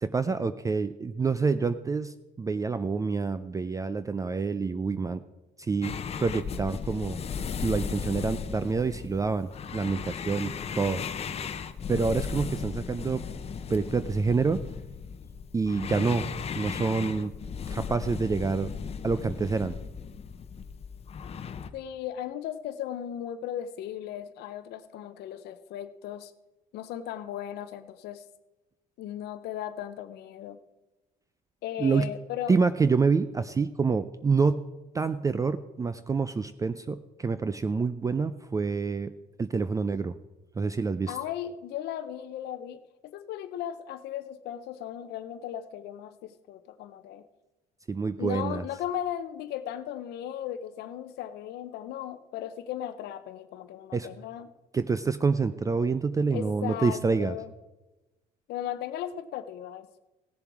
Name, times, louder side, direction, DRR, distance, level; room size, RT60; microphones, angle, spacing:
voice 1, 0.0-5.2 5.6-7.2 7.6-11.0 11.9-13.2 13.7-14.6 15.5-16.3 16.6-17.3 17.7-18.7 19.0-19.7 31.8-32.1 32.5-34.6 34.9-39.1 39.4-40.1 40.6-41.1 47.9-48.6 53.9-54.1 54.7-57.4, right 4 dB, 20° right, 13 dB, 0.4 m, -27 dB
sound 1, 5.8-21.7, left 6 dB, 35° left, 0.7 m, -36 dB
voice 2, 21.7-26.3 26.7-28.2 29.0-30.6 31.6-32.6 41.1-47.2 48.2-54.5 56.3-57.5 58.5-59.9, left 10 dB, 75° left, 10 dB, 0.6 m, -36 dB
16.0 x 7.0 x 4.7 m, 1.0 s
cardioid pair, 110°, 17 cm